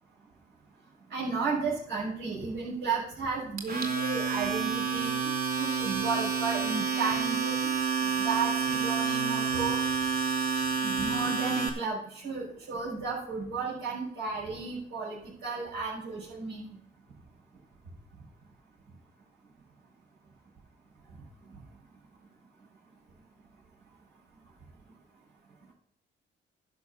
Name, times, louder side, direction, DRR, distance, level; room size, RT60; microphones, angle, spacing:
voice 1, 1.1-9.8 10.8-16.8, right 4 dB, 80° right, -9 dB, 6.1 m, -34 dB
Domestic sounds home sounds, 3.6-11.7, right 5 dB, 50° right, 2.8 m, -29 dB
11.0 x 6.7 x 7.0 m, 0.64 s
cardioid pair, 90°, 20 cm